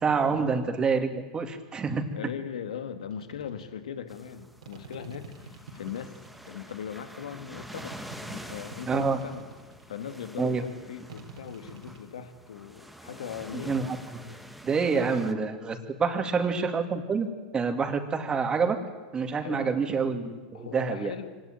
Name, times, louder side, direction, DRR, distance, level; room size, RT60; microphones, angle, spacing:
voice 1, 0.0-2.0 8.9-9.2 10.4-10.6 13.5-14.0 14.6-17.3 17.5-18.8 19.1-21.1, right 5 dB, 25° right, 7 dB, 2.7 m, -27 dB
voice 2, 2.1-6.2 6.4-9.5 9.9-13.8 15.0-15.1 16.0-16.3 19.4-19.8 20.5-21.3, left 8 dB, 80° left, 9 dB, 2.1 m, -39 dB
sound 1, 3.1-3.7 4.6-6.8 7.7-10.0 11.1-12.1, right 4 dB, 80° right, 4.0 m, -47 dB
sound 2, 4.1-15.3, equal, ahead, 1.7 m, -47 dB
24.5 x 18.0 x 9.2 m, 1.3 s
hypercardioid pair, 100°, 4 cm